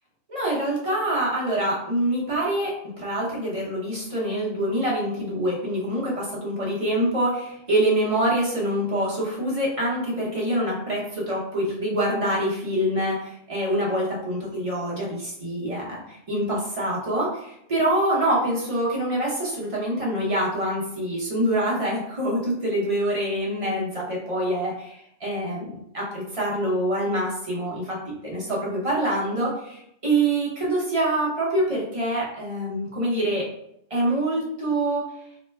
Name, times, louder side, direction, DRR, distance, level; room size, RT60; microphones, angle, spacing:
voice 1, 0.3-28.0 28.2-33.5 33.9-35.0, right 1 dB, 30° right, -5 dB, 0.7 m, -25 dB
3.1 x 2.1 x 3.3 m, 0.77 s
omnidirectional pair, 1.4 m